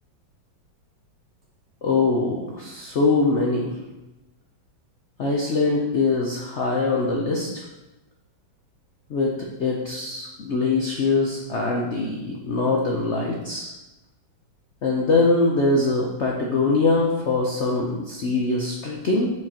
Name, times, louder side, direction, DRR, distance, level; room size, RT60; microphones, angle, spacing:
voice 1, 1.8-3.7 5.2-7.5 9.1-13.7 14.8-19.3, left 3 dB, 75° left, -1 dB, 0.6 m, -23 dB
7.8 x 4.9 x 2.9 m, 1.0 s
omnidirectional pair, 2.2 m